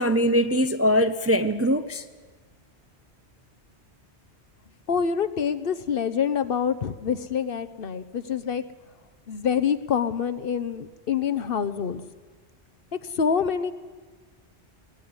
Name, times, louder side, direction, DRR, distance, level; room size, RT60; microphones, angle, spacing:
voice 1, 0.0-2.0, equal, 20° right, 0.5 m, -22 dB
voice 2, 4.9-8.6 9.3-12.0 12.9-13.7, left 7 dB, 60° left, 0.9 m, -26 dB
20.0 x 15.0 x 9.6 m
omnidirectional pair, 1.2 m